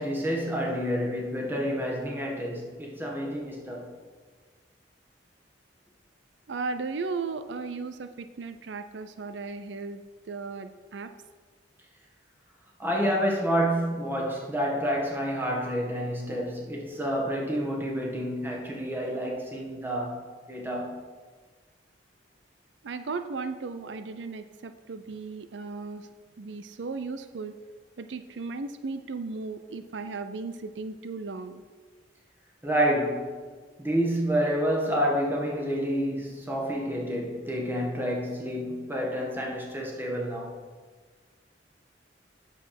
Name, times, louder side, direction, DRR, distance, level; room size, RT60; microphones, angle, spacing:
voice 1, 0.0-3.9 12.8-21.0 32.6-33.4 33.8-40.6, equal, 10° right, 1.6 m, -29 dB
voice 2, 6.5-11.1 22.8-26.1 26.4-27.5 28.0-31.6, right 4 dB, 90° right, 0.5 m, -36 dB
8.2 x 6.7 x 5.9 m
head